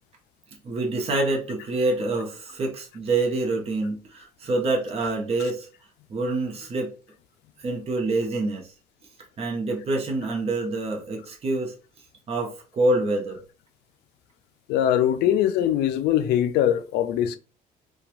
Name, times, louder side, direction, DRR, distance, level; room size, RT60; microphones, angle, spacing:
voice 1, 0.6-5.7 6.1-6.9 7.6-8.7 9.4-11.7 12.3-13.4 15.2-15.3, right 2 dB, 35° right, 0.8 m, -26 dB
voice 2, 14.7-17.4, left 10 dB, 80° left, 0.4 m, -22 dB
2.9 x 2.3 x 2.5 m
cardioid pair, 110°, 17 cm